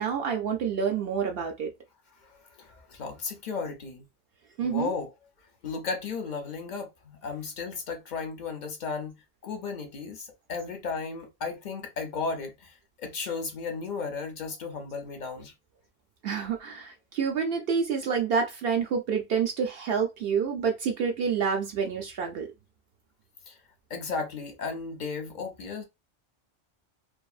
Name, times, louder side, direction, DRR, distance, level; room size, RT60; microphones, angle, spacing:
voice 1, 0.0-1.7 4.6-4.9 16.2-22.5, right 6 dB, 65° right, 0.7 m, -28 dB
voice 2, 2.2-4.0 4.6-5.1 5.6-9.2 9.4-15.5 23.5-23.6 23.9-25.8, left 4 dB, 50° left, 0.6 m, -35 dB
2.6 x 2.5 x 2.3 m
omnidirectional pair, 1.2 m